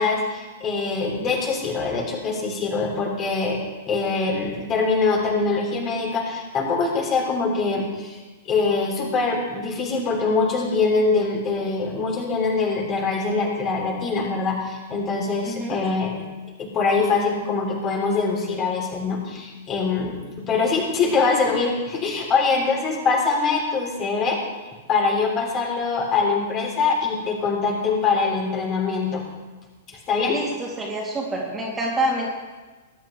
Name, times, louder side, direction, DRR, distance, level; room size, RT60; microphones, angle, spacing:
voice 1, 0.0-3.6 3.9-8.2 8.5-16.2 16.6-24.4 24.9-29.2 30.1-30.4, left 4 dB, 25° left, -1 dB, 3.3 m, -23 dB
voice 2, 30.3-32.3, right 1 dB, 15° right, -3 dB, 3.0 m, -26 dB
20.5 x 11.0 x 3.4 m, 1.2 s
figure-of-eight pair, 105°, 0 cm